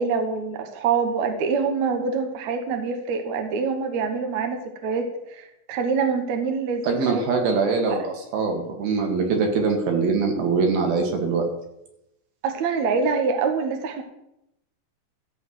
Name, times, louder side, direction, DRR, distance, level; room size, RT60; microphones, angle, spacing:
voice 1, 0.0-7.2 7.9-8.0 12.4-14.0, right 5 dB, 75° right, 4 dB, 1.6 m, -25 dB
voice 2, 6.8-11.4, right 4 dB, 60° right, 2 dB, 3.4 m, -23 dB
14.0 x 4.8 x 7.6 m, 0.84 s
omnidirectional pair, 5.2 m